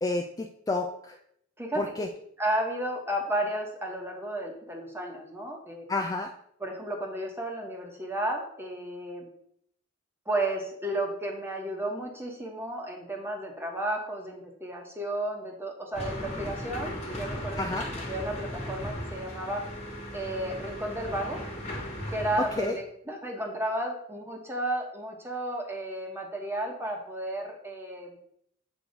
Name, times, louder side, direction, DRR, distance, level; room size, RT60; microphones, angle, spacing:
voice 1, 0.0-1.2 1.8-2.1 5.9-6.3 17.6-17.9 22.6-22.8, left 2 dB, 20° left, 4 dB, 0.4 m, -30 dB
voice 2, 2.4-5.9 6.6-9.3 10.3-17.8 18.1-19.6 20.1-21.4 22.1-28.2, right 1 dB, 10° right, 1 dB, 1.1 m, -33 dB
sound 1, 15.9-22.7, equal, 35° left, 1.5 m, -37 dB
7.8 x 3.1 x 5.2 m, 0.71 s
head